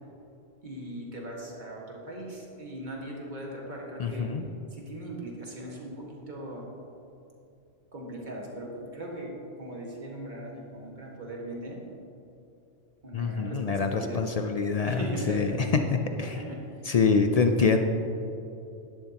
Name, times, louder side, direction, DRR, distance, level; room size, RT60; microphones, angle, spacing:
voice 1, 0.6-4.3 4.7-6.7 7.9-11.8 13.0-14.3 14.8-15.7 16.2-16.9, right 1 dB, 40° right, -2 dB, 1.8 m, -39 dB
voice 2, 4.0-4.4 13.1-15.0 15.3-15.5 15.9-16.3 16.8-17.8, left 5 dB, 65° left, 5 dB, 0.3 m, -25 dB
11.5 x 10.5 x 2.9 m, 2.8 s
omnidirectional pair, 1.3 m